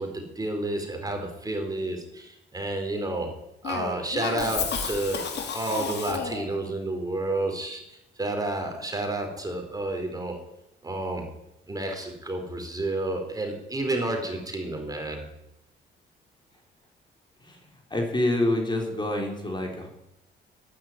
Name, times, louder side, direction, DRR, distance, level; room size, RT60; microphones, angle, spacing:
voice 1, 0.0-3.3 3.6-7.8 8.2-10.4 10.8-11.2 11.7-15.2, right 2 dB, 20° right, 4 dB, 4.1 m, -30 dB
Cough, 3.6-6.6, left 6 dB, 60° left, 2.7 m, -31 dB
voice 2, 17.9-19.9, left 1 dB, 20° left, 2 dB, 3.8 m, -27 dB
12.5 x 10.5 x 9.5 m, 0.84 s
cardioid pair, 90°, 20 cm